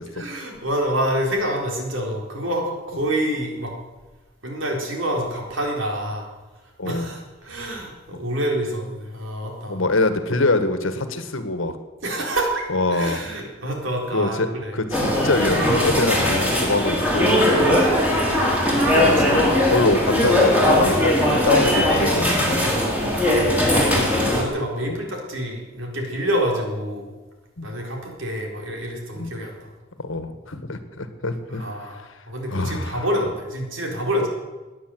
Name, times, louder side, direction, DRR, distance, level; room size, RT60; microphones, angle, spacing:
voice 1, 0.2-3.7 4.4-6.3 6.8-9.8 12.0-12.6 12.9-14.8 19.2-19.3 22.6-27.1 27.6-29.7 31.5-34.3, right 1 dB, 70° right, 1 dB, 4.2 m, -27 dB
voice 2, 6.8-7.1 9.7-11.8 12.7-13.3 14.1-17.3 17.5-17.9 18.8-22.7 24.9-25.0 27.6-27.7 29.2-29.3 30.0-31.6 32.5-33.1, left 2 dB, 70° left, 9 dB, 1.6 m, -24 dB
sound 1, 14.9-24.4, left 1 dB, 5° right, 3.6 m, -19 dB
18.0 x 10.0 x 7.9 m, 1.2 s
head